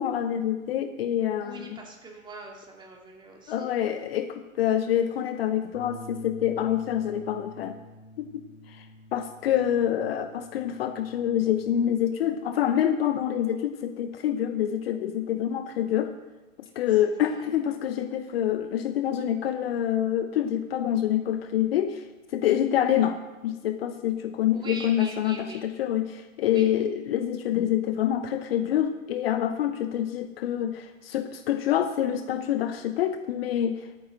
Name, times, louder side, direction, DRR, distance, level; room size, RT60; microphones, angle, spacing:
voice 1, 0.0-1.8 3.5-7.8 8.2-8.9 9.1-16.1 16.7-22.0 22.3-23.2 23.4-33.9, left 10 dB, 45° left, 9 dB, 0.9 m, -26 dB
voice 2, 1.4-3.7 17.0-17.5 22.7-23.0 24.5-25.6 26.5-26.7, right 2 dB, 10° right, -1 dB, 2.4 m, -43 dB
Bass guitar, 5.7-12.0, left 1 dB, 85° left, 1.6 m, -48 dB
22.0 x 9.2 x 3.9 m, 1.1 s
hypercardioid pair, 125°, 41 cm